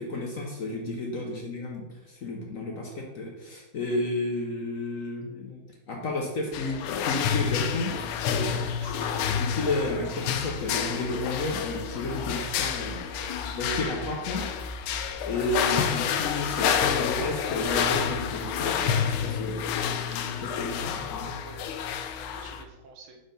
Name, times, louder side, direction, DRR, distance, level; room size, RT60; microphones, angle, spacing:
voice 1, 0.0-13.1 13.6-14.5 15.2-19.6 20.4-21.3, left 2 dB, 60° left, 0 dB, 0.8 m, -32 dB
sound 1, 6.5-22.6, left 8 dB, 80° left, 1.3 m, -29 dB
voice 2, 8.8-9.3 13.1-13.3 20.1-20.3 21.4-21.6 22.2-23.2, right 4 dB, 90° right, 4 dB, 1.8 m, -49 dB
5.0 x 4.3 x 5.1 m, 1.1 s
omnidirectional pair, 2.3 m